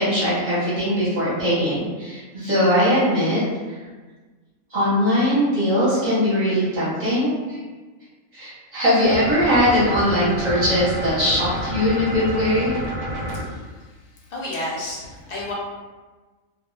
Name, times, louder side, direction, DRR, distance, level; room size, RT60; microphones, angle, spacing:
voice 1, 0.0-3.4 4.7-7.6 8.3-12.7, equal, 40° right, -10 dB, 0.7 m, -20 dB
sound 1, 9.0-13.4, equal, 90° right, 0.3 m, -29 dB
voice 2, 13.3-13.7 14.3-15.5, left 1 dB, 55° left, -5 dB, 0.6 m, -31 dB
2.2 x 2.0 x 3.0 m, 1.3 s
omnidirectional pair, 1.4 m